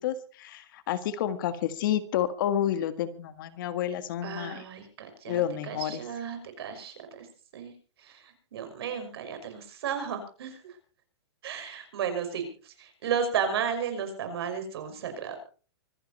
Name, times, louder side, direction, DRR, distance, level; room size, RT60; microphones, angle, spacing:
voice 1, 0.0-4.6 5.3-6.0, left 10 dB, 50° left, 12 dB, 1.7 m, -30 dB
voice 2, 4.2-5.4 5.7-7.3 7.5-7.7 8.0-10.6 11.4-15.4, right 7 dB, 60° right, 7 dB, 5.7 m, -33 dB
25.0 x 10.5 x 4.3 m, 0.40 s
hypercardioid pair, 160°, 14 cm